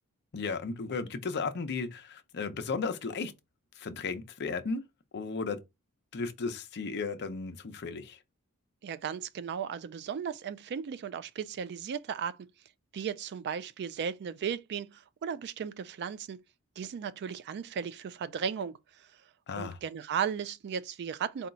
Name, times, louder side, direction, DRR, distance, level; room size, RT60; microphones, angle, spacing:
voice 1, 0.3-3.3 3.8-4.8 5.1-5.6 6.1-8.2 19.5-19.8, left 4 dB, 50° left, 0.6 m, -35 dB
voice 2, 8.8-12.5 12.9-16.4 16.8-19.1 19.5-21.5, right 7 dB, 50° right, 0.3 m, -36 dB
4.2 x 2.3 x 3.9 m
head